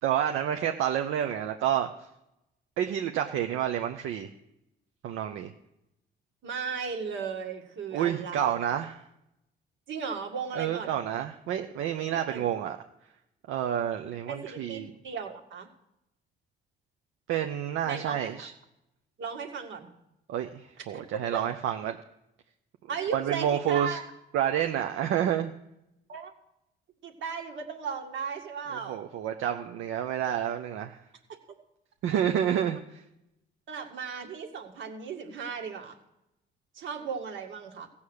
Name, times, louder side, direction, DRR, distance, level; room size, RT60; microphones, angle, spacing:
voice 1, 0.0-1.9 2.8-4.3 5.0-5.5 7.9-9.0 10.6-12.8 13.5-14.9 17.3-18.5 20.3-22.0 23.1-24.0 24.3-25.5 28.7-31.0 32.0-33.0, right 10 dB, 90° right, 5 dB, 0.7 m, -29 dB
voice 2, 6.4-8.6 9.9-10.9 12.1-12.5 14.3-15.7 17.8-18.5 19.2-19.9 20.9-21.4 22.9-24.0 26.1-26.3 27.0-29.0 32.1-32.2 33.7-36.0 36.7-37.9, right 6 dB, 75° right, 3 dB, 2.1 m, -36 dB
15.5 x 7.2 x 6.5 m, 0.84 s
cardioid pair, 90°, 20 cm